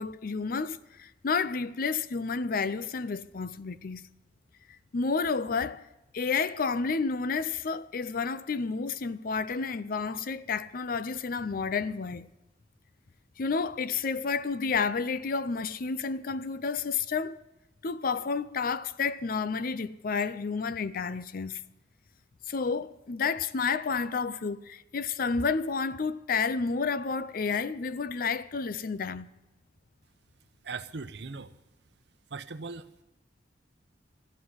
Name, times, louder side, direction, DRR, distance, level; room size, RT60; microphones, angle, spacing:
voice 1, 0.0-4.0 4.9-5.9 6.1-12.3 13.4-17.4 17.8-21.6 22.5-29.3, left 5 dB, 55° left, 0.5 m, -30 dB
voice 2, 30.6-31.5 32.3-33.0, right 4 dB, 70° right, 0.8 m, -39 dB
13.5 x 8.8 x 9.4 m
head